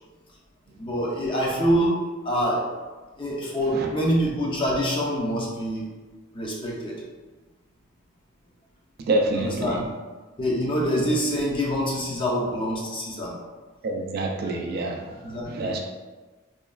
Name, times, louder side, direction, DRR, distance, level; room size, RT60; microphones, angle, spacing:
voice 1, 0.8-2.0 2.2-2.7 3.2-5.9 6.3-7.0 9.3-9.9 10.4-13.4 14.4-14.5 15.2-15.8, equal, 25° left, -4 dB, 0.5 m, -25 dB
voice 2, 9.0-9.8 13.8-15.1 15.5-15.8, right 2 dB, 50° right, 1 dB, 0.3 m, -26 dB
3.1 x 2.2 x 2.3 m, 1.3 s
head